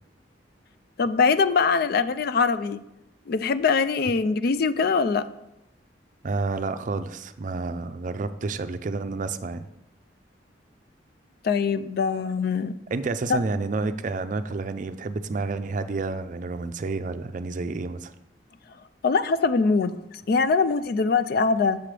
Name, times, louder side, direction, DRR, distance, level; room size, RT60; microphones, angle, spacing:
voice 1, 1.0-2.8 3.3-5.2 11.4-12.7 13.3-13.4 19.0-20.0 20.3-21.8, left 4 dB, 60° left, 13 dB, 0.4 m, -22 dB
voice 2, 6.2-9.6 12.9-18.1, right 3 dB, 45° right, 11 dB, 0.4 m, -30 dB
7.5 x 7.0 x 3.3 m, 0.87 s
head